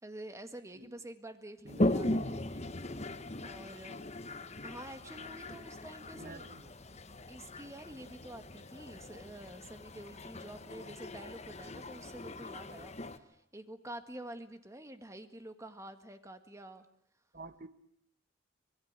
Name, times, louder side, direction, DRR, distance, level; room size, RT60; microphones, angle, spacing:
voice 1, 0.0-2.6 3.4-4.1 4.6-6.5 7.3-16.8, right 1 dB, 15° right, 8 dB, 1.7 m, -48 dB
voice 2, 1.6-2.0 5.0-5.1 6.1-6.7 17.3-17.7, right 2 dB, 45° right, 10 dB, 1.5 m, -50 dB
Toilet flush, 1.7-13.2, left 1 dB, 35° left, 1.2 m, -38 dB
25.5 x 21.0 x 8.1 m, 0.71 s
head